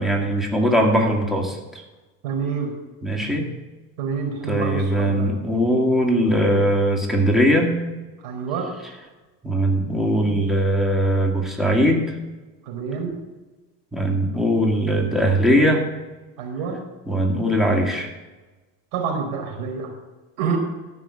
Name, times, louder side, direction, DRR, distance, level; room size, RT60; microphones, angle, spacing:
voice 1, 0.0-1.8 3.0-3.4 4.5-7.7 9.4-12.0 13.9-15.9 17.1-18.1, equal, ahead, 0 dB, 2.2 m, -20 dB
voice 2, 2.2-2.7 4.0-5.3 8.2-8.7 12.7-13.1 16.4-16.8 18.9-19.9 20.4-20.6, right 6 dB, 85° right, 1 dB, 4.5 m, -27 dB
13.5 x 6.1 x 7.6 m, 1.2 s
supercardioid pair, 100°, 42 cm